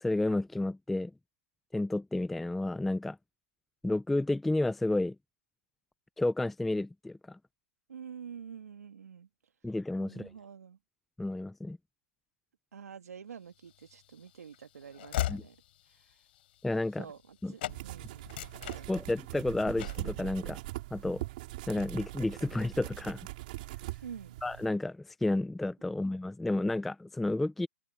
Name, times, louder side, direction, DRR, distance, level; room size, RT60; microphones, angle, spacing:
voice 1, 0.0-1.1 1.7-3.2 3.8-5.2 6.2-7.4 9.6-10.3 11.2-11.8 15.3-15.4 16.6-17.0 17.4-17.5 18.9-20.6 20.9-21.2 21.7-23.3 24.4-27.7, left 2 dB, ahead, 0.4 m, -31 dB
voice 2, 7.9-9.3 10.0-10.8 12.7-15.6 15.9-16.2 17.0-18.3 18.7-18.9 24.0-24.4, right 7 dB, 85° right, 2.4 m, -47 dB
Train / Slam, 13.7-17.3 17.6-17.8 18.2-19.4 19.8-20.1, left 14 dB, 40° left, 3.5 m, -38 dB
sound 1, 17.7-24.7, right 19 dB, 35° right, 3.8 m, -41 dB
open air
hypercardioid pair, 165°, 8 cm